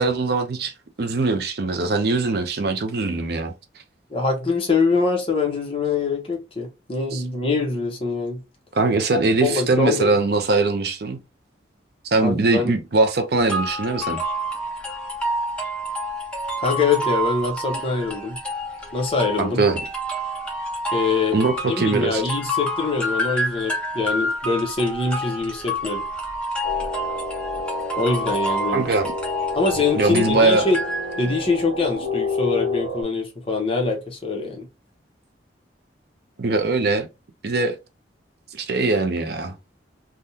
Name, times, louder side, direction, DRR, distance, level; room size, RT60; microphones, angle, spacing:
voice 1, 0.0-3.5 7.1-7.2 8.7-11.2 12.0-14.2 17.7-17.8 19.4-19.8 21.3-22.2 28.7-29.1 29.9-30.7 36.4-37.1 37.4-37.7 38.5-39.6, right 3 dB, 55° right, 0.5 m, -21 dB
voice 2, 4.1-8.4 9.4-10.1 12.2-12.7 16.6-18.4 18.9-19.6 20.9-21.4 21.7-26.0 28.0-28.9 29.5-30.8 31.2-34.7, left 4 dB, 30° left, 0.9 m, -24 dB
sound 1, 13.5-31.4, equal, 5° left, 0.8 m, -28 dB
sound 2, 26.6-33.0, left 3 dB, 65° left, 1.3 m, -30 dB
3.5 x 2.2 x 2.7 m
head